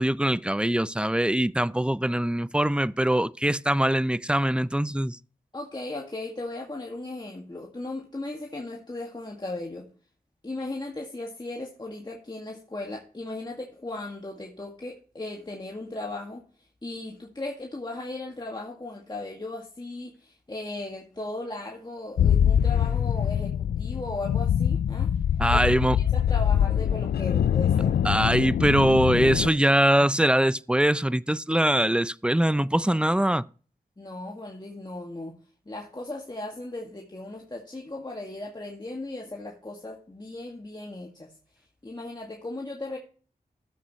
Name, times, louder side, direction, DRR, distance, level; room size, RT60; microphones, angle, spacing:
voice 1, 0.0-5.2 25.4-26.0 28.0-33.5, right 1 dB, 5° right, 0.5 m, -22 dB
voice 2, 5.5-9.9 10.4-16.5 16.8-25.1 25.5-28.0 34.0-35.4 35.7-41.3 41.8-43.0, left 2 dB, 25° left, 1.9 m, -37 dB
sound 1, 22.2-29.5, left 9 dB, 85° left, 0.4 m, -24 dB
12.5 x 7.8 x 3.1 m
cardioid pair, 45°, 16 cm